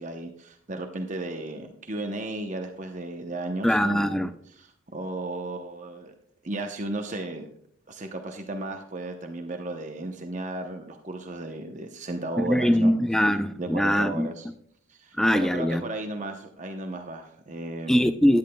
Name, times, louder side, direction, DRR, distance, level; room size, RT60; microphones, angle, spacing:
voice 1, 0.0-4.2 4.5-6.1 6.4-7.5 7.9-12.9 13.6-14.5 14.9-18.0, right 2 dB, 35° right, 0.8 m, -35 dB
voice 2, 3.6-4.3 12.4-14.3 15.2-15.8 17.9-18.4, equal, ahead, 0.3 m, -22 dB
16.0 x 10.5 x 2.3 m
head